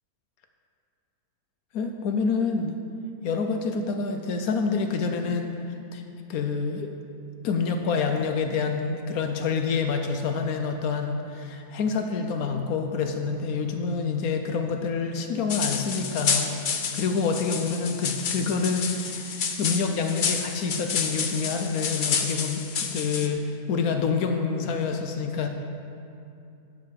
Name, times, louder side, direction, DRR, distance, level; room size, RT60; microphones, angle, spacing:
voice 1, 1.7-2.7 3.2-5.5 5.9-6.0 6.3-6.9 7.4-25.5, left 5 dB, 75° left, 5 dB, 1.1 m, -27 dB
sound 1, 15.5-23.3, left 6 dB, 50° left, 0.6 m, -29 dB
9.4 x 5.3 x 7.6 m, 2.6 s
omnidirectional pair, 1.6 m